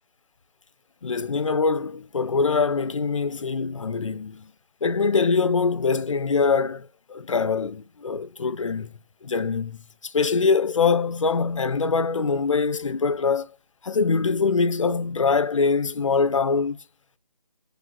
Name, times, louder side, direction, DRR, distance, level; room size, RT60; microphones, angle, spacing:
voice 1, 1.0-4.5 4.8-13.5 13.8-16.8, left 4 dB, 50° left, 0.4 m, -23 dB
3.2 x 2.6 x 2.3 m
figure-of-eight pair, 160°, 21 cm